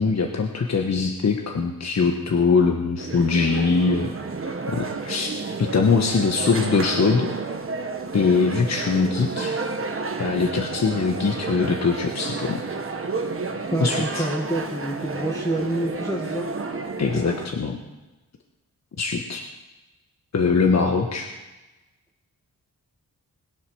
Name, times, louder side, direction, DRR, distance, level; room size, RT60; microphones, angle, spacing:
voice 1, 0.0-4.2 4.7-5.3 5.6-7.3 8.1-9.6 10.2-12.6 13.8-14.3 17.0-17.8 19.0-19.4 20.3-21.3, left 4 dB, 50° left, 3 dB, 1.4 m, -22 dB
sound 1, 3.0-17.5, right 4 dB, 35° right, 1.4 m, -31 dB
voice 2, 13.7-16.4, right 1 dB, 10° left, -1 dB, 1.8 m, -27 dB
20.5 x 7.3 x 6.4 m, 1.1 s
cardioid pair, 80°, 35 cm